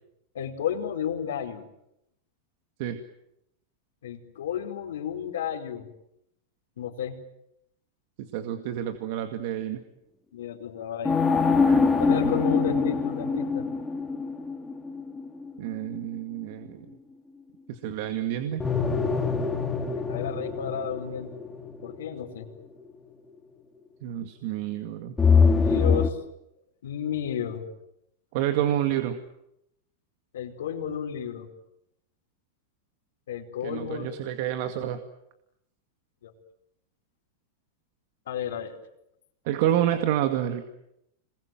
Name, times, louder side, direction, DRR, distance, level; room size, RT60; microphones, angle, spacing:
voice 1, 0.3-1.7 4.0-5.9 6.8-7.2 10.3-11.2 12.0-13.7 20.1-21.4 21.8-22.5 25.4-26.1 26.8-27.7 30.3-31.5 33.3-34.1 36.2-36.3 38.3-38.8, left 8 dB, 85° left, 1 dB, 4.7 m, -32 dB
voice 2, 8.3-9.8 11.7-11.8 15.6-16.9 17.7-18.7 24.0-25.1 28.3-29.2 33.6-35.0 39.5-40.7, right 11 dB, 60° right, 8 dB, 2.2 m, -28 dB
sound 1, 11.0-16.2 18.6-22.6 25.2-26.1, left 5 dB, 10° left, 2.8 m, -24 dB
27.0 x 22.0 x 9.3 m, 0.83 s
supercardioid pair, 130°, 0 cm